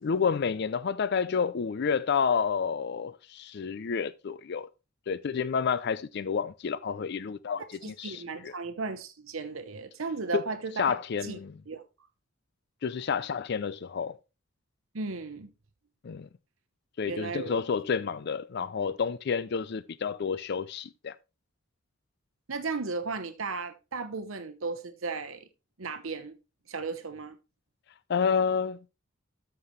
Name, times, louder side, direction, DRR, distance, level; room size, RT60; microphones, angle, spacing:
voice 1, 0.0-4.7 5.1-8.5 10.3-10.4 10.8-11.5 12.8-14.2 16.0-16.3 17.0-21.1 28.1-28.8, left 6 dB, 55° left, 0.4 m, -29 dB
voice 2, 7.8-11.0 11.2-11.4 11.7-11.8 14.9-15.5 17.1-17.6 22.5-25.5 25.8-26.3 26.7-27.3, right 4 dB, 75° right, 0.9 m, -35 dB
13.5 x 5.8 x 3.1 m
head